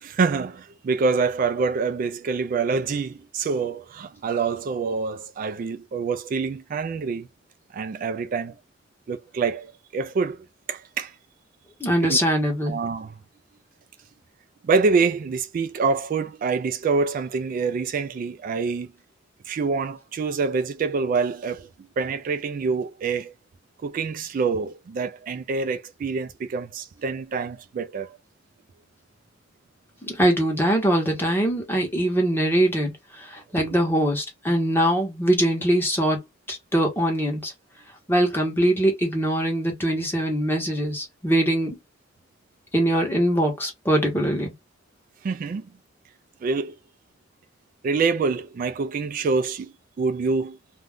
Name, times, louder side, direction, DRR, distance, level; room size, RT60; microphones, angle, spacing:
voice 1, 0.0-7.3 7.7-8.6 9.1-11.1 12.0-12.2 12.7-13.1 14.6-18.9 19.5-21.7 22.0-23.3 23.8-28.2 33.6-33.7 45.2-45.7 46.4-46.7 47.8-50.6, right 4 dB, 45° right, 0.3 m, -26 dB
voice 2, 11.8-12.8 30.0-36.2 36.5-37.5 38.1-41.8 42.7-44.5, right 1 dB, 10° left, 1.0 m, -22 dB
2.5 x 2.2 x 3.4 m
head